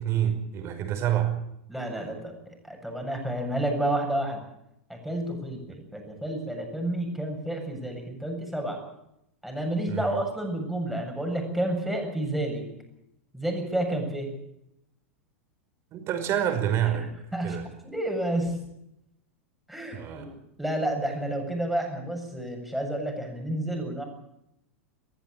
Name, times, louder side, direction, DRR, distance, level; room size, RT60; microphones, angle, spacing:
voice 1, 0.0-1.3 9.9-10.1 15.9-17.1 17.4-17.7 19.9-20.3, right 10 dB, 40° right, 6 dB, 5.3 m, -27 dB
voice 2, 1.7-2.3 2.7-4.4 4.9-8.8 9.4-12.6 13.3-14.3 16.9-17.6 17.8-18.6 19.7-20.3 20.6-24.0, right 1 dB, ahead, 2 dB, 7.6 m, -30 dB
22.0 x 15.0 x 8.7 m, 0.80 s
figure-of-eight pair, 90°, 7 cm